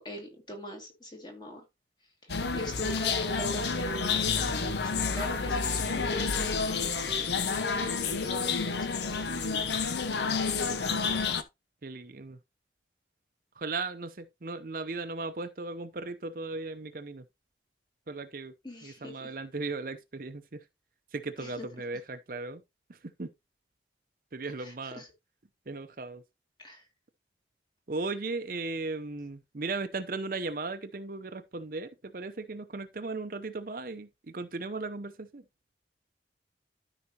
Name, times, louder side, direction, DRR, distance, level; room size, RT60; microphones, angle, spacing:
voice 1, 0.0-1.6 2.5-9.5 18.6-19.3 21.4-21.7 24.4-25.1 26.6-26.8, left 1 dB, 25° left, 2.1 m, -42 dB
sound 1, 2.3-11.4, left 5 dB, 75° left, 0.8 m, -29 dB
voice 2, 11.8-12.4 13.6-17.2 18.1-18.5 18.8-20.6 21.1-22.6 23.2-23.3 24.3-25.0 25.7-26.2 27.9-35.4, right 3 dB, 50° right, 0.7 m, -37 dB
13.0 x 5.0 x 2.9 m
head